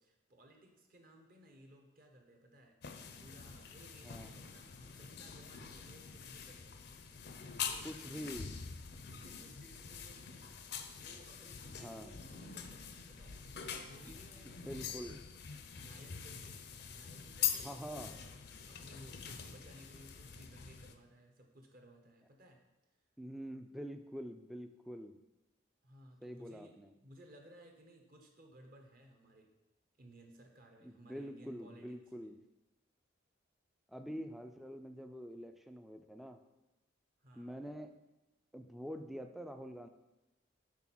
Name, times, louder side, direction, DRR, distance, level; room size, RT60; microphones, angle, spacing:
voice 1, 0.0-2.8 3.2-8.3 9.0-15.2 15.6-16.6 16.9-18.3 18.7-22.6 25.8-26.8 27.0-29.5 30.0-32.3 37.2-37.6, right 1 dB, 45° right, 3 dB, 0.9 m, -59 dB
sound 1, 2.8-20.9, left 7 dB, 55° left, 0.5 m, -44 dB
voice 2, 7.8-8.6 11.8-12.1 14.1-14.2 14.6-15.2 17.6-18.2 23.2-25.2 26.2-26.9 30.8-32.4 33.9-36.4 37.3-37.9 38.5-39.9, equal, ahead, 6 dB, 0.3 m, -46 dB
6.1 x 3.7 x 6.0 m, 0.99 s
head